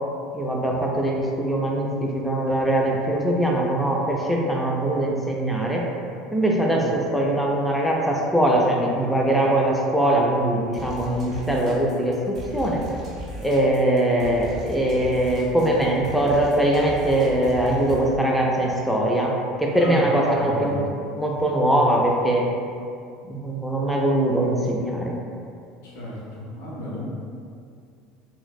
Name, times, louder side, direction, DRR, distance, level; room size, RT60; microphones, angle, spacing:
voice 1, 0.3-5.8 6.3-12.8 13.4-20.8 21.2-22.4 23.3-25.1, right 1 dB, ahead, -2 dB, 0.4 m, -22 dB
sound 1, 10.7-18.1, right 2 dB, 45° right, 0.7 m, -38 dB
voice 2, 19.8-20.9 25.8-27.0, left 1 dB, 70° left, -6 dB, 0.7 m, -33 dB
3.9 x 2.0 x 2.3 m, 2.4 s
hypercardioid pair, 70°, 0 cm